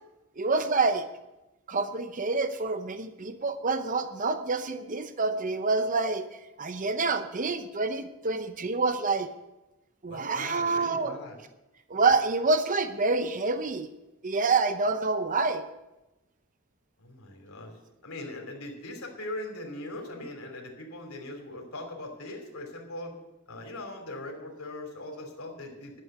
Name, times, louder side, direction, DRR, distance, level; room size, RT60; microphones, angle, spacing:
voice 1, 0.4-1.0 1.7-6.2 6.6-9.3 10.0-11.2 11.9-13.9 14.2-15.6, right 3 dB, 40° right, 9 dB, 0.7 m, -27 dB
voice 2, 10.1-11.4 17.0-17.7 18.0-23.1 23.5-26.0, left 1 dB, 85° left, 1 dB, 2.9 m, -40 dB
11.5 x 7.7 x 7.9 m, 0.99 s
head